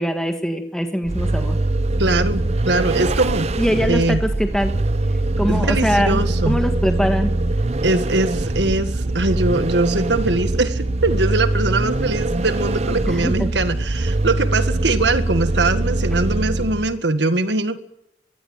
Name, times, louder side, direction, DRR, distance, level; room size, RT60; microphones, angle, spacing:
voice 1, 0.0-1.6 3.6-4.8 5.4-7.3 13.1-13.5, equal, 5° left, 6 dB, 1.7 m, -22 dB
Vehicle, 1.0-17.0, right 2 dB, 40° right, 0.7 m, -22 dB
voice 2, 2.0-4.2 5.5-6.6 7.8-17.8, right 2 dB, 80° right, 10 dB, 1.8 m, -22 dB
22.5 x 16.0 x 9.0 m, 0.85 s
head